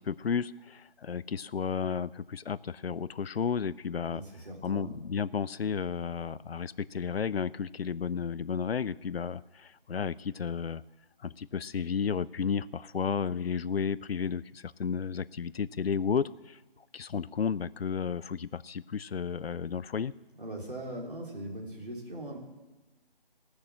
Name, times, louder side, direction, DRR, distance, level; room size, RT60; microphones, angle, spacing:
voice 1, 0.0-4.2 4.6-10.8 11.2-16.6 16.9-20.1, left 6 dB, 80° left, 18 dB, 0.6 m, -32 dB
voice 2, 4.1-4.9 20.4-22.4, right 1 dB, 55° right, 0 dB, 3.4 m, -40 dB
18.0 x 6.6 x 7.4 m, 1.1 s
figure-of-eight pair, 175°, 30 cm